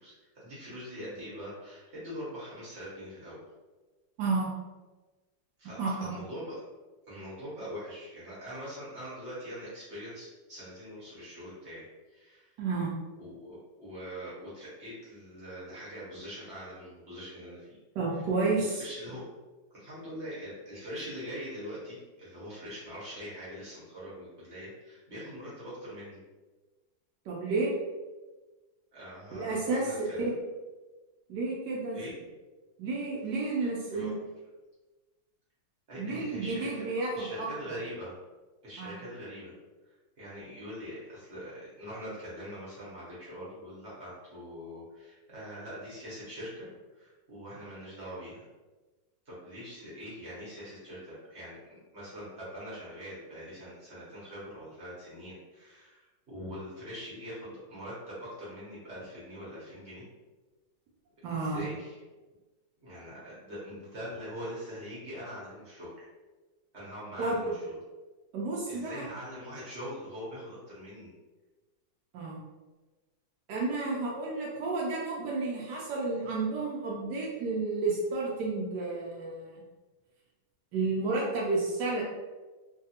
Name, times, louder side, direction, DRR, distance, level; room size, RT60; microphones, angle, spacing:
voice 1, 0.0-3.4 5.6-6.6 7.1-12.5 13.2-17.8 18.1-18.2 18.6-19.3 19.7-26.2 28.9-30.3 31.9-32.2 33.9-34.1 35.9-36.8 37.1-38.2 38.6-39.5 39.8-48.5 49.3-60.0 61.4-62.0 62.8-66.1 66.7-67.7 68.7-71.1, equal, 45° right, -8 dB, 1.1 m, -43 dB
voice 2, 4.2-4.5 5.8-6.1 12.6-12.9 18.0-18.8 27.3-27.7 29.3-29.9 30.2-30.3 31.3-32.0 32.8-34.1 36.0-37.5 38.8-39.0 61.2-61.6 67.2-67.5 68.3-69.0 72.1-72.4 73.5-79.5 80.7-82.0, right 3 dB, 70° right, -4 dB, 1.0 m, -31 dB
3.2 x 2.3 x 2.8 m, 1.2 s
omnidirectional pair, 2.1 m